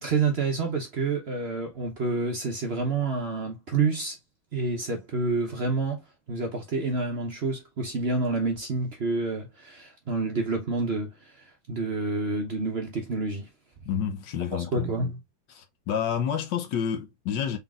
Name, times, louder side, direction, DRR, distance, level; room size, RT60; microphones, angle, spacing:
voice 1, 0.0-4.2 4.5-13.5 14.5-15.2, right 3 dB, 50° right, 0.7 m, -28 dB
voice 2, 13.8-14.9 15.5-17.6, left 8 dB, 70° left, 1.4 m, -29 dB
4.1 x 3.9 x 2.3 m
omnidirectional pair, 2.1 m